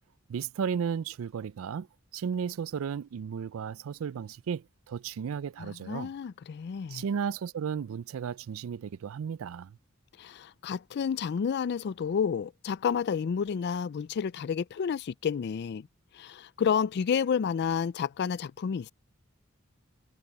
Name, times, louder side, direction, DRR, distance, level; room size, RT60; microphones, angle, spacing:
voice 1, 0.3-1.9 2.1-6.1 6.9-9.7, right 7 dB, 75° right, 0.4 m, -34 dB
voice 2, 5.6-7.0 10.2-15.9 16.1-18.9, left 7 dB, 55° left, 0.4 m, -30 dB
head